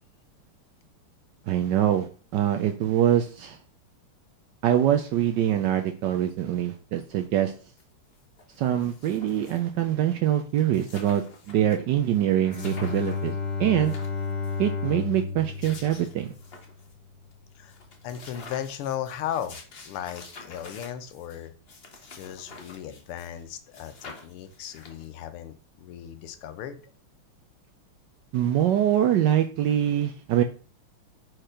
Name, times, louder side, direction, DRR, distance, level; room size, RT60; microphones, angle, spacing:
voice 1, 1.5-2.1 2.3-3.6 4.6-7.5 8.6-13.3 13.6-13.9 14.6-16.3 28.3-30.4, right 11 dB, 75° right, 6 dB, 1.0 m, -24 dB
sound 1, 7.8-7.9 8.1-9.8 10.2-10.3 10.5-11.8 12.1-12.2 12.5-13.3 13.7-14.6 15.3-16.9 17.3-17.4 17.7-23.4 23.7-25.2, left 3 dB, 40° left, 0.9 m, -48 dB
Bowed string instrument, 12.4-16.9, left 4 dB, 20° right, 1.8 m, -32 dB
voice 2, 18.0-21.5 22.1-26.8, left 10 dB, 90° left, 10 dB, 1.7 m, -36 dB
4.8 x 4.5 x 5.0 m, 0.38 s
omnidirectional pair, 2.4 m